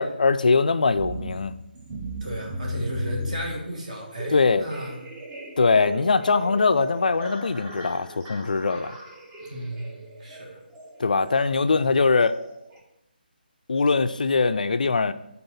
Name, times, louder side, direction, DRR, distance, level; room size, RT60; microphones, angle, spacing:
voice 1, 0.0-1.6 4.3-4.7 5.6-9.0 11.0-12.4 13.7-15.1, left 4 dB, 55° left, 0.4 m, -22 dB
sound 1, 1.0-12.8, equal, 15° right, 0.7 m, -37 dB
voice 2, 2.2-4.9 9.5-10.6 11.7-11.9, right 1 dB, 45° right, 1.7 m, -34 dB
7.5 x 3.9 x 5.6 m
figure-of-eight pair, 150°, 5 cm